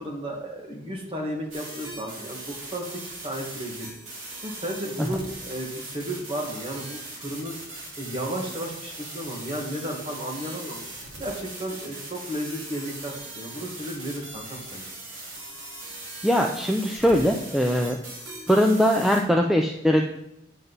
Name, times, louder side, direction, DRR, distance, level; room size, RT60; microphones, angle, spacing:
voice 1, 0.0-3.9 4.4-10.8 11.2-14.8, right 1 dB, 30° right, -1 dB, 1.7 m, -33 dB
sound 1, 1.5-19.2, right 2 dB, 90° right, 2.4 m, -40 dB
voice 2, 16.2-18.0 18.5-20.0, equal, ahead, 1 dB, 0.4 m, -21 dB
9.0 x 7.8 x 4.1 m, 0.83 s
head